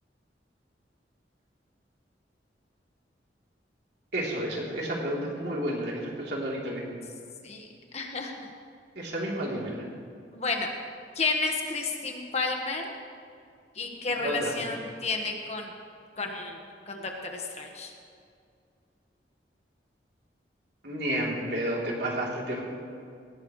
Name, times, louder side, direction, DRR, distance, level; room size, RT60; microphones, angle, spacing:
voice 1, 4.1-7.0 9.0-9.9 14.2-14.5 20.8-22.6, right 1 dB, 70° right, -3 dB, 3.3 m, -31 dB
voice 2, 5.3-5.7 7.4-7.7 7.9-8.3 10.3-10.7 11.1-12.9 13.7-15.7 16.2-17.9, left 3 dB, 40° left, 2 dB, 1.5 m, -32 dB
18.5 x 16.5 x 3.2 m, 2.3 s
head